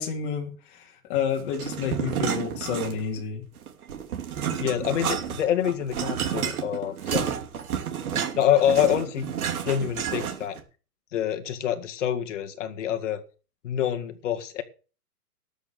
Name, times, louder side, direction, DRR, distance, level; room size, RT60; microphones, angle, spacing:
voice 1, 0.0-3.4, left 7 dB, 35° left, 1 dB, 2.9 m, -30 dB
sound 1, 1.5-3.2 3.6-10.6, right 8 dB, 65° right, 2.9 m, -30 dB
voice 2, 4.6-7.3 8.4-9.3 9.6-10.6 11.1-13.2 13.6-14.6, left 10 dB, 50° left, 6 dB, 2.0 m, -26 dB
12.5 x 7.0 x 7.7 m, 0.37 s
hypercardioid pair, 170°, 46 cm